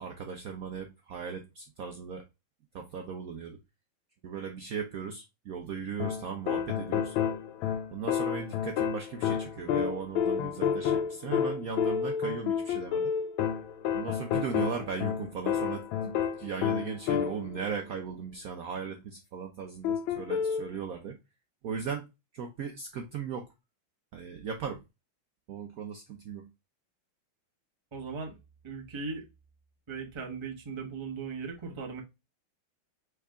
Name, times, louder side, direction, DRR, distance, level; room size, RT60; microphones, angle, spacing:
voice 1, 0.0-2.2 2.7-3.6 4.2-7.1 7.9-13.1 13.9-21.2 21.6-22.1 22.3-23.5 24.1-24.8 25.5-26.5, right 6 dB, 90° right, 0.7 m, -37 dB
sound 1, 6.0-17.6 19.8-20.7, left 8 dB, 75° left, 1.3 m, -30 dB
voice 2, 27.9-28.3 28.6-29.2 29.9-32.0, right 5 dB, 35° right, 0.4 m, -38 dB
4.7 x 3.3 x 3.4 m
omnidirectional pair, 2.3 m